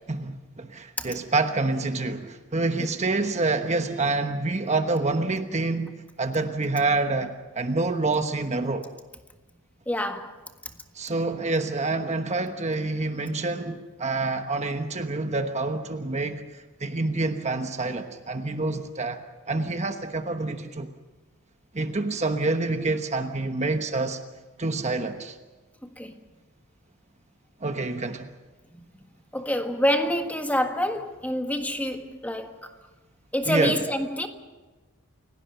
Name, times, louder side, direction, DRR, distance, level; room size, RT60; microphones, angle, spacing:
voice 1, 0.1-8.9 10.9-19.2 19.5-20.9 21.7-24.2 24.6-25.4 27.6-28.3 33.4-33.8, right 3 dB, 30° right, 1.2 m, -27 dB
voice 2, 9.9-10.3 25.8-26.1 28.7-28.8 29.3-32.7 33.3-34.3, equal, 5° left, 1.6 m, -27 dB
29.0 x 17.5 x 6.9 m
head